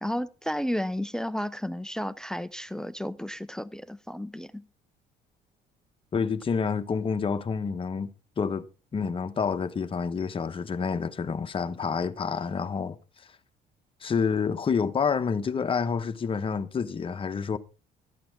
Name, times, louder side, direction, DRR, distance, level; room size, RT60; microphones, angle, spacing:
voice 1, 0.0-4.6, equal, 5° left, 0.5 m, -32 dB
voice 2, 6.1-8.1 8.4-8.7 8.9-13.0 14.0-17.6, left 6 dB, 30° left, 1.0 m, -28 dB
12.5 x 8.7 x 4.7 m
cardioid pair, 110°, 17 cm